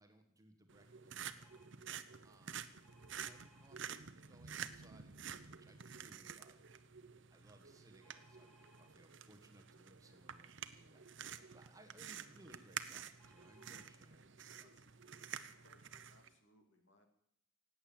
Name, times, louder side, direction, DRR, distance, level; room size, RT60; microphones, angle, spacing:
voice 1, 0.0-1.7 2.2-6.7 7.3-15.2, right 1 dB, 15° right, 5 dB, 1.5 m, -65 dB
sound 1, 0.7-16.3, right 8 dB, 60° right, 0.8 m, -50 dB
sound 2, 1.4-1.7 2.8-3.7 8.0-8.9 13.2-13.9 14.7-14.8 15.0-15.2, left 2 dB, 5° left, 2.8 m, -69 dB
voice 2, 14.6-14.9 15.6-17.1, left 1 dB, 60° left, 5 dB, 2.6 m, -70 dB
17.5 x 8.9 x 8.8 m, 0.72 s
head